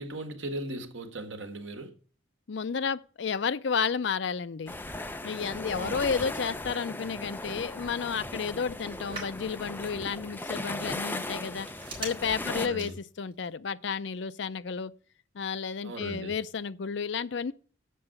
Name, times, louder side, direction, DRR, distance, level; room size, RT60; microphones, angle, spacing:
voice 1, 0.0-1.9 5.7-6.0 12.5-13.0 15.8-16.3, right 1 dB, 75° right, 1.7 m, -38 dB
voice 2, 2.5-4.7 5.2-11.7 12.0-14.9 15.3-17.5, left 6 dB, 65° left, 0.5 m, -32 dB
Telephone, 3.9-13.5, right 3 dB, 25° right, 4.6 m, -49 dB
sound 1, 4.7-12.7, left 2 dB, 10° left, 0.5 m, -37 dB
7.7 x 6.8 x 7.7 m
head